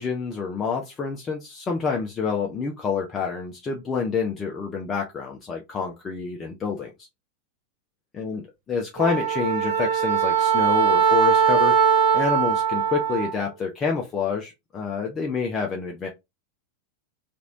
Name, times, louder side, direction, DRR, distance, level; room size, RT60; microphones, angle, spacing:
voice 1, 0.0-6.9 8.1-8.4 8.7-11.7 12.1-16.1, left 5 dB, 20° left, 0.6 m, -28 dB
Wind instrument woodwind instrument, 9.0-13.4, right 7 dB, 45° right, 1.0 m, -21 dB
3.0 x 2.5 x 2.8 m
figure-of-eight pair, 90°, 0 cm